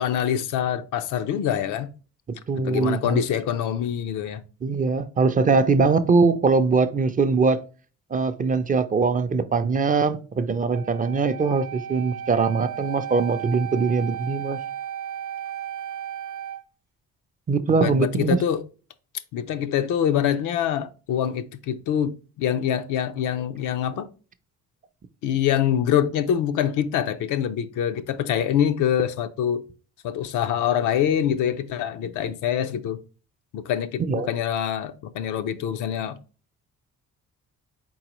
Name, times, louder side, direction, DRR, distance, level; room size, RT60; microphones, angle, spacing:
voice 1, 0.0-1.9 2.5-4.4 17.7-18.6 19.3-24.1 25.2-29.7 30.0-33.0 33.5-36.2, left 9 dB, 80° left, 0.5 m, -25 dB
voice 2, 2.5-3.2 4.6-7.6 8.1-14.6 17.5-18.4 34.0-34.3, right 4 dB, 30° right, 0.4 m, -22 dB
Wind instrument woodwind instrument, 10.7-16.6, right 10 dB, 75° right, 0.7 m, -34 dB
4.2 x 3.9 x 3.0 m
cardioid pair, 90°, 30 cm